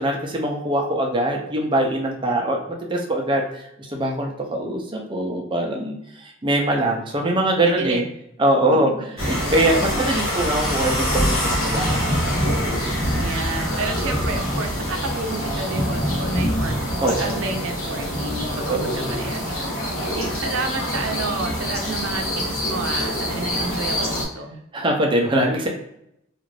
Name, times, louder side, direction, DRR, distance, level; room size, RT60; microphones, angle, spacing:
voice 1, 0.0-2.6 2.9-8.0 8.4-8.9 9.2-12.2 17.0-17.4 18.7-19.2 23.6-23.7 24.7-25.7, right 1 dB, 25° right, 0 dB, 0.5 m, -23 dB
voice 2, 7.2-8.1 8.7-8.8 13.1-24.6, right 3 dB, 75° right, 4 dB, 0.5 m, -31 dB
sound 1, 9.2-24.3, equal, 75° left, 0.9 m, -25 dB
2.4 x 2.4 x 3.2 m, 0.78 s
head